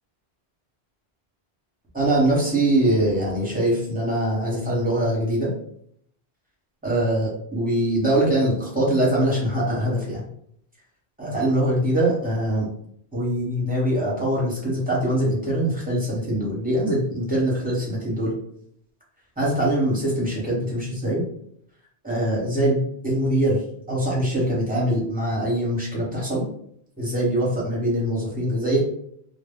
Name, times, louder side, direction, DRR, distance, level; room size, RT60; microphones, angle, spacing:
voice 1, 1.9-5.5 6.8-10.2 11.2-12.7 13.1-18.3 19.4-21.2 22.0-23.6 23.9-26.4 27.0-28.8, right 1 dB, 10° right, -6 dB, 0.8 m, -23 dB
2.1 x 2.1 x 3.5 m, 0.68 s
omnidirectional pair, 1.1 m